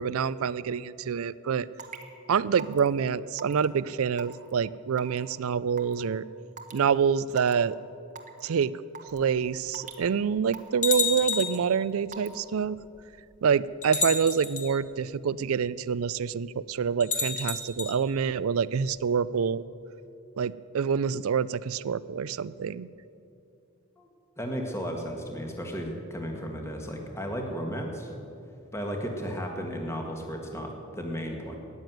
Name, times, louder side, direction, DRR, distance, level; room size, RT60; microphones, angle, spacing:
voice 1, 0.0-1.7 2.3-6.2 6.7-7.8 8.4-8.8 9.0-12.8 13.4-19.6 20.4-22.9, right 6 dB, 75° right, 18 dB, 0.4 m, -27 dB
Raindrop / Water tap faucet / Drip, 1.8-2.0 2.6-2.9 3.4-3.6 4.2-4.5 5.0-5.2 5.8-5.9 6.6-6.8 7.3-7.5 8.1-8.4 8.9-9.2 9.7-10.0 10.5-10.8 11.3-11.6 12.1-12.3, right 6 dB, 35° right, 1.1 m, -41 dB
sound 1, 9.2-9.3 10.0-10.1 10.8-11.7 12.8-12.9 13.8-14.7 17.0-17.9, left 5 dB, 35° left, 1.6 m, -29 dB
voice 2, 24.4-28.1 28.7-31.6, equal, 10° left, 2 dB, 1.7 m, -34 dB
14.0 x 9.7 x 9.2 m, 2.7 s
head